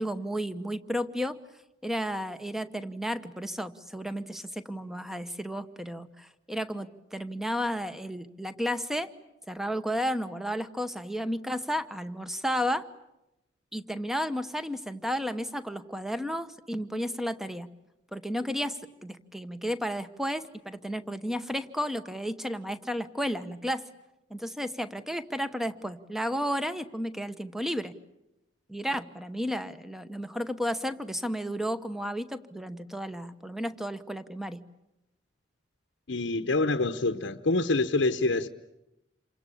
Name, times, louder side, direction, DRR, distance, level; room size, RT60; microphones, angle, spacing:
voice 1, 0.0-1.4 1.8-9.1 9.5-12.9 13.7-17.7 18.1-23.9 24.3-27.9 28.7-34.6, equal, ahead, 1.0 m, -33 dB
voice 2, 36.1-38.5, left 2 dB, 70° left, 0.9 m, -26 dB
28.0 x 24.5 x 8.5 m
head